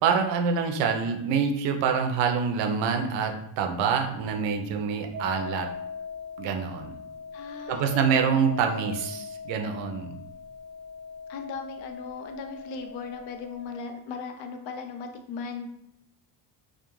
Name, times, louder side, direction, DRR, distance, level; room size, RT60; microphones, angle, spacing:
voice 1, 0.0-5.7 6.4-7.0 7.7-10.2, right 6 dB, 70° right, 4 dB, 0.5 m, -26 dB
sound 1, 5.1-13.7, left 5 dB, 25° left, 0.7 m, -40 dB
voice 2, 7.3-8.5 11.3-15.7, left 5 dB, 75° left, 5 dB, 0.5 m, -38 dB
2.3 x 2.1 x 3.0 m, 0.77 s
cardioid pair, 165°, 45 cm